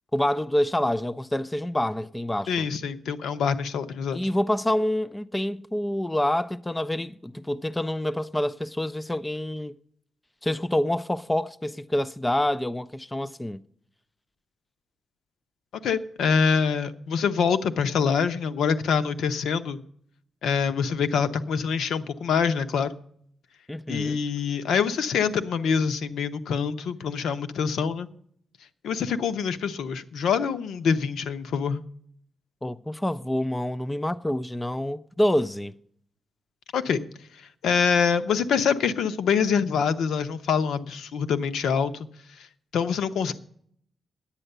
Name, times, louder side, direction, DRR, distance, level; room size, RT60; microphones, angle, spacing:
voice 1, 0.1-2.6 4.1-9.7 10.4-13.6 23.7-24.2 32.6-35.7, left 1 dB, 10° left, 0.4 m, -27 dB
voice 2, 2.5-4.2 15.8-19.8 20.4-22.9 23.9-28.1 28.8-31.8 36.7-37.0 37.4-41.9 42.4-42.5 42.7-43.3, left 6 dB, 85° left, 0.8 m, -25 dB
9.9 x 8.9 x 6.6 m
wide cardioid pair, 140°, 0 cm